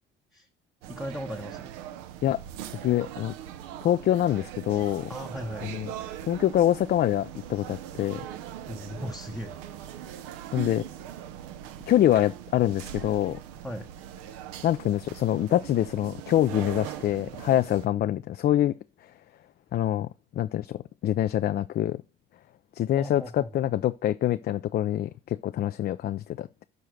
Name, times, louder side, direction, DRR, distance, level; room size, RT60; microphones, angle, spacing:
sound 1, 0.8-17.9, right 10 dB, 70° right, 0.8 m, -41 dB
voice 1, 0.9-1.7 5.1-5.8 8.6-9.6 13.6-13.9 23.0-23.6, left 1 dB, ahead, 0.8 m, -37 dB
voice 2, 2.8-3.3 3.8-5.1 5.6-5.9 6.3-8.2 10.5-10.8 11.9-13.4 14.6-18.7 19.7-22.0 22.8-26.6, left 12 dB, 35° left, 0.4 m, -25 dB
6.6 x 5.6 x 6.2 m
hypercardioid pair, 60°, 29 cm